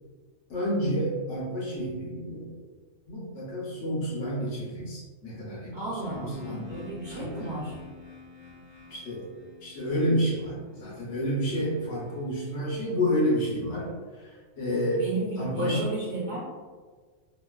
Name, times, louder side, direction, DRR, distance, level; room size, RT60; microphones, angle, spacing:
voice 1, 0.5-2.5 3.1-5.8 6.0-6.7 7.1-7.6 8.9-9.3 9.6-15.0 15.4-15.9, equal, 70° left, -4 dB, 1.1 m, -29 dB
voice 2, 5.7-7.8 15.0-16.4, right 2 dB, 55° right, -7 dB, 0.6 m, -34 dB
sound 1, 6.0-13.8, left 3 dB, 45° left, 0.7 m, -49 dB
2.9 x 2.3 x 2.2 m, 1.5 s
omnidirectional pair, 1.2 m